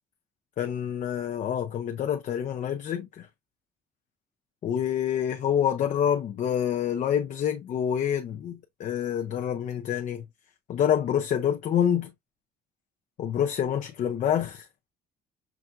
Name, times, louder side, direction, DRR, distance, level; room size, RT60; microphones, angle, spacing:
voice 1, 0.6-3.3 4.6-10.2 10.7-12.1 13.2-14.7, left 9 dB, 45° left, 0.5 m, -27 dB
5.9 x 2.5 x 2.4 m
cardioid pair, 110°, 17 cm